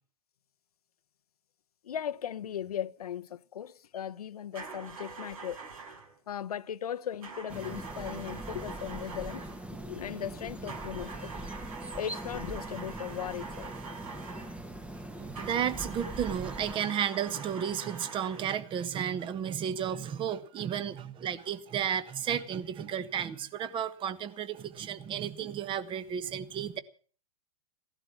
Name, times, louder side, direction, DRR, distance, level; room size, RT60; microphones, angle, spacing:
voice 1, 1.8-5.6 6.3-11.4 11.9-13.7, left 9 dB, 80° left, 0.9 m, -38 dB
sound 1, 4.5-6.1 7.2-9.7 10.7-14.6 15.3-18.6, right 4 dB, 70° right, 4.6 m, -44 dB
sound 2, 7.5-16.7, right 1 dB, 5° right, 1.1 m, -42 dB
voice 2, 15.2-26.8, right 8 dB, 25° right, 1.4 m, -33 dB
16.5 x 11.5 x 7.4 m
hypercardioid pair, 120°, 19 cm